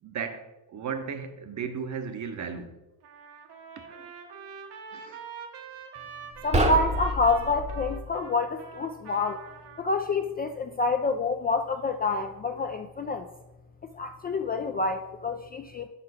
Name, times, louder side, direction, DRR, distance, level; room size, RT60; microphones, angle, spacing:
voice 1, 0.0-2.8 3.8-4.1 4.9-5.2, right 6 dB, 40° right, 0.9 m, -36 dB
Trumpet, 3.0-9.9, right 6 dB, 70° right, 1.1 m, -44 dB
sound 1, 6.3-8.0, right 1 dB, 15° right, 0.8 m, -27 dB
voice 2, 6.4-9.4 9.8-13.3 13.9-15.9, left 3 dB, 25° left, 0.3 m, -27 dB
5.5 x 4.9 x 4.9 m
supercardioid pair, 85°, 43 cm